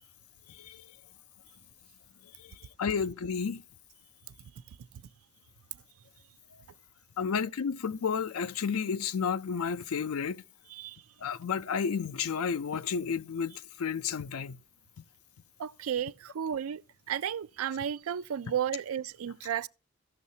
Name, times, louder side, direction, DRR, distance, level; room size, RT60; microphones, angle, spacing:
voice 1, 0.5-0.9 2.4-3.6 7.2-10.4 11.2-14.6, left 6 dB, 80° left, 0.5 m, -32 dB
voice 2, 10.7-11.0 15.6-16.8 17.1-19.7, right 9 dB, 75° right, 0.4 m, -33 dB
15.5 x 6.3 x 2.7 m
head